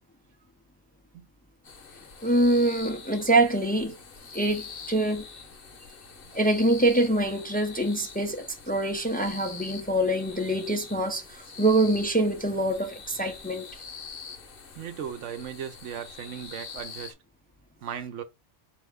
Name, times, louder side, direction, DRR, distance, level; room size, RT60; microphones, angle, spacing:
sound 1, 1.6-17.1, left 5 dB, 50° left, 0.9 m, -44 dB
voice 1, 2.2-4.0 4.3-5.3 6.3-13.7, right 1 dB, 15° left, 0.3 m, -25 dB
voice 2, 14.7-17.1 17.8-18.2, right 8 dB, 75° right, 0.9 m, -37 dB
4.2 x 2.7 x 3.5 m
omnidirectional pair, 1.3 m